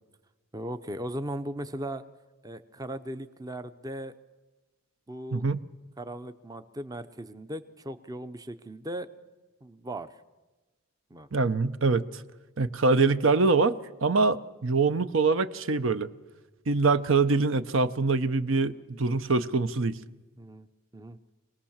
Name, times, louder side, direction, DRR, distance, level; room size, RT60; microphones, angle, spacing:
voice 1, 0.5-2.0 2.4-4.1 5.1-5.4 6.0-9.1 9.6-10.2 11.1-11.3 20.4-20.7 20.9-21.2, right 1 dB, 15° right, 11 dB, 0.7 m, -37 dB
voice 2, 11.3-12.2 12.6-16.1 16.7-20.0, right 3 dB, 60° right, 12 dB, 0.8 m, -24 dB
25.5 x 18.5 x 7.3 m, 1.2 s
head